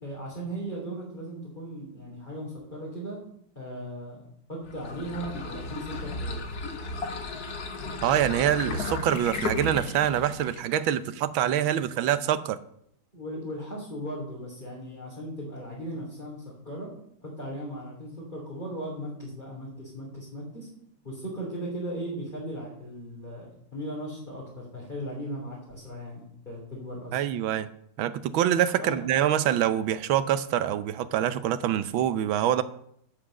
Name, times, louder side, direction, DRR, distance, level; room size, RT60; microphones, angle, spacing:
voice 1, 0.0-3.2 3.5-6.5 13.1-16.9 17.2-20.7 21.0-27.2 28.8-28.9, right 1 dB, 20° left, -6 dB, 3.4 m, -37 dB
sound 1, 4.6-10.7, left 3 dB, 50° left, 1.6 m, -34 dB
voice 2, 8.0-12.6 27.1-27.7 28.0-32.6, right 11 dB, 75° right, 14 dB, 1.5 m, -25 dB
15.0 x 5.8 x 6.4 m, 0.71 s
omnidirectional pair, 2.3 m